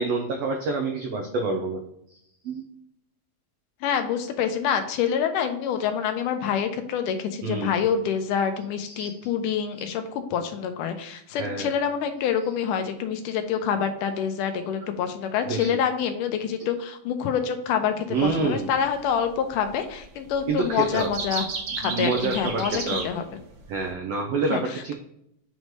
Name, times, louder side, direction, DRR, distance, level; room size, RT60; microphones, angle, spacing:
voice 1, 0.0-1.8 2.4-2.6 7.4-7.8 8.9-9.2 11.4-11.7 15.4-15.8 18.1-18.7 20.5-21.1 21.7-23.1 23.7-24.9, right 4 dB, 85° right, 2 dB, 1.4 m, -27 dB
voice 2, 3.8-21.5 21.8-23.2 24.5-24.9, left 7 dB, 80° left, 7 dB, 2.1 m, -27 dB
sound 1, 18.2-18.4 19.6-20.0 20.3-23.9, right 4 dB, 55° right, 1.4 m, -33 dB
6.2 x 3.2 x 5.2 m, 0.76 s
omnidirectional pair, 3.9 m